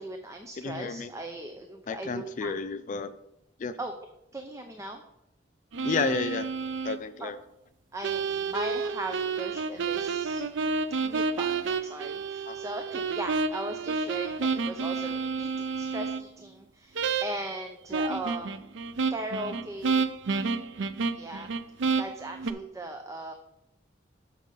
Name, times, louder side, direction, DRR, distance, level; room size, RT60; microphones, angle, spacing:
voice 1, 0.0-2.5 3.8-3.9 4.3-5.0 7.2-7.3 7.9-10.5 11.0-18.6 19.1-20.1 21.1-21.5 22.0-23.3, right 1 dB, 15° right, 4 dB, 0.5 m, -38 dB
voice 2, 0.6-1.1 1.9-3.1 3.6-3.8 5.8-6.5 6.8-7.4 12.5-12.6, left 4 dB, 40° left, 12 dB, 0.3 m, -31 dB
sound 1, 5.7-7.0 8.0-16.2 17.0-17.6 17.9-22.5, right 4 dB, 75° right, 0.5 m, -30 dB
6.5 x 6.4 x 5.3 m, 0.86 s
head